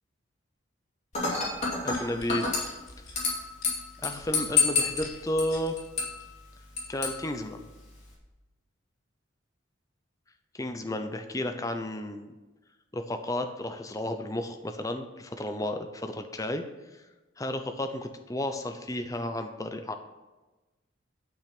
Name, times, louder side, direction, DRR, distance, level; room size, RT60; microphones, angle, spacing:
Dishes pots and pans / Glass, 1.1-8.1, left 4 dB, 35° left, 2.7 m, -31 dB
sound 1, 1.6-5.7 6.2-6.4, left 3 dB, 85° left, 4.3 m, -48 dB
voice 1, 1.8-2.4 3.0-3.1 4.0-5.8 6.9-7.6 10.6-12.3 12.9-16.6 17.4-19.9, left 1 dB, 15° left, 6 dB, 0.7 m, -32 dB
12.0 x 6.1 x 6.0 m, 1.1 s
head